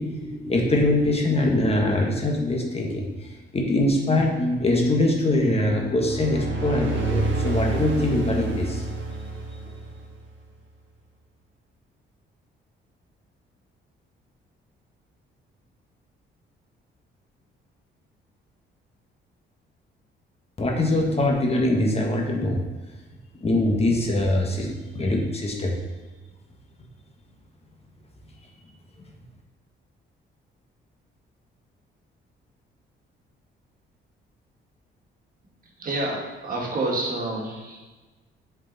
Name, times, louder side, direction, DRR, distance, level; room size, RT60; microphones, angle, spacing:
voice 1, 0.0-8.9 20.6-22.6 23.4-25.8, left 1 dB, 30° left, 0 dB, 1.3 m, -23 dB
sound 1, 5.7-10.3, right 3 dB, 70° right, 1.3 m, -29 dB
voice 2, 35.8-37.8, right 2 dB, 45° right, -2 dB, 1.9 m, -28 dB
7.6 x 4.7 x 4.1 m, 1.2 s
cardioid pair, 90°, 20 cm